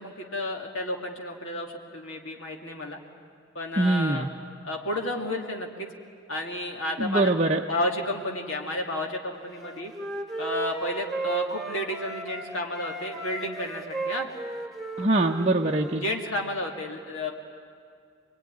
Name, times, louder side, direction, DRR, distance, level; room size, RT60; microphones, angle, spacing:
voice 1, 0.0-3.0 3.5-4.3 4.6-5.9 6.3-7.4 7.6-9.9 10.4-14.3 16.0-17.3, left 1 dB, 60° left, 1 dB, 2.3 m, -31 dB
voice 2, 3.8-4.3 7.0-7.6 15.0-16.0, right 2 dB, 30° right, 0 dB, 0.8 m, -23 dB
Wind instrument woodwind instrument, 9.6-12.5 12.7-16.2, right 2 dB, ahead, 2.0 m, -35 dB
26.5 x 22.0 x 9.8 m, 2.2 s
head